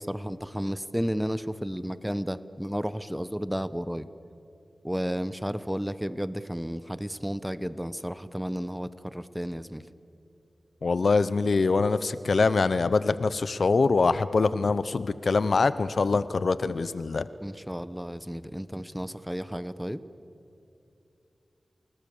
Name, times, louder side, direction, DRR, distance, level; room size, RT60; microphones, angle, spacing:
voice 1, 0.0-4.1 4.8-9.8 17.4-20.0, equal, 5° right, 14 dB, 0.9 m, -32 dB
voice 2, 10.8-17.3, left 4 dB, 70° left, 15 dB, 0.7 m, -24 dB
29.5 x 19.0 x 7.1 m, 2.7 s
cardioid pair, 55°, 0 cm